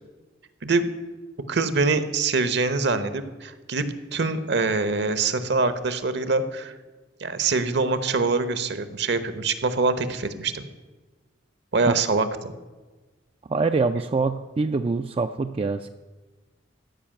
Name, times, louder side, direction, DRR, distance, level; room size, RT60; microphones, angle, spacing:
voice 1, 1.5-3.8 4.1-6.7 7.2-10.6 11.7-12.5, right 3 dB, 60° right, 12 dB, 1.0 m, -24 dB
voice 2, 13.5-15.9, right 4 dB, 30° right, 8 dB, 0.4 m, -24 dB
14.5 x 5.6 x 8.8 m, 1.2 s
head